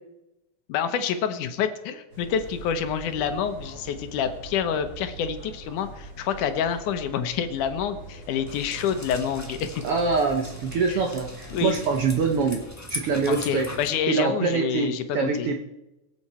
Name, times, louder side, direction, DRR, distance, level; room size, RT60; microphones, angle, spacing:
voice 1, 0.7-9.8 10.9-11.0 11.5-11.8 13.3-15.5, left 8 dB, 75° left, 9 dB, 2.4 m, -28 dB
sound 1, 2.1-12.6, right 2 dB, 30° right, 5.4 m, -43 dB
sound 2, 8.5-13.9, equal, 25° left, 0.3 m, -40 dB
voice 2, 9.8-12.6 12.9-13.7 14.1-15.6, right 4 dB, 65° right, 3 dB, 1.5 m, -24 dB
23.0 x 8.0 x 4.3 m, 0.95 s
omnidirectional pair, 3.7 m